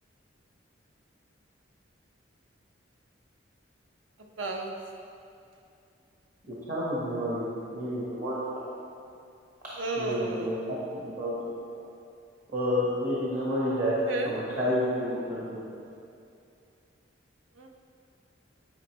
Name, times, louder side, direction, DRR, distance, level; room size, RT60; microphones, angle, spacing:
voice 1, 4.4-4.7 9.8-10.5 14.1-14.4 17.6-17.7, right 3 dB, 85° right, 2 dB, 0.8 m, -32 dB
voice 2, 6.5-7.4 7.7-8.4 9.9-11.3 12.5-14.0 14.2-15.6, equal, 50° right, -8 dB, 1.1 m, -30 dB
9.7 x 4.4 x 3.1 m, 2.5 s
head